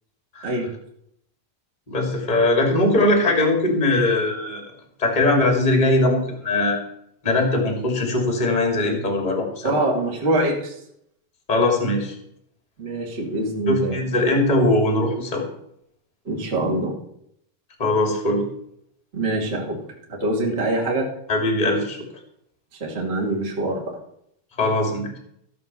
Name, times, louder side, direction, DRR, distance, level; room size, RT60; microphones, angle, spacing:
voice 1, 0.4-0.7 9.6-10.8 12.8-14.0 16.2-17.0 19.1-19.8 20.1-21.1 22.8-24.0, right 2 dB, 25° right, -1 dB, 1.6 m, -24 dB
voice 2, 1.9-4.6 5.0-6.8 7.2-9.8 11.5-12.2 13.7-15.4 17.8-18.4 21.3-22.0 24.6-25.2, left 2 dB, 15° left, 2 dB, 1.7 m, -20 dB
14.5 x 6.6 x 6.9 m, 0.74 s
omnidirectional pair, 5.0 m